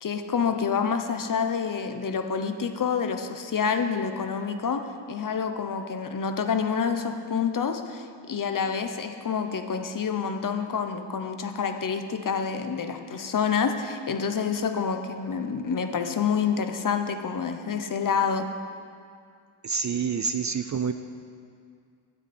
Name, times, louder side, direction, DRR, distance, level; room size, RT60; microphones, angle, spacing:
voice 1, 0.0-18.5, left 6 dB, 40° left, 7 dB, 0.9 m, -28 dB
voice 2, 19.6-20.9, right 6 dB, 40° right, 9 dB, 0.4 m, -27 dB
16.0 x 9.8 x 4.3 m, 2.3 s
wide cardioid pair, 125°, 49 cm